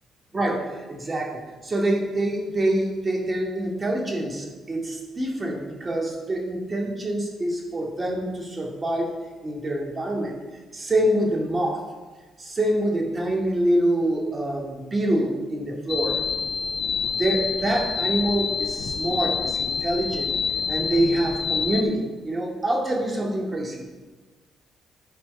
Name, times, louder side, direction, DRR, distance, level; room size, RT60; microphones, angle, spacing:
voice 1, 0.3-9.1 9.4-10.4 10.7-11.8 12.4-16.2 17.2-20.3 20.7-23.9, right 1 dB, 35° right, -1 dB, 2.5 m, -25 dB
sound 1, 15.9-21.8, left 6 dB, 55° left, 0.4 m, -27 dB
10.5 x 4.5 x 5.6 m, 1.3 s
supercardioid pair, 65°, 0 cm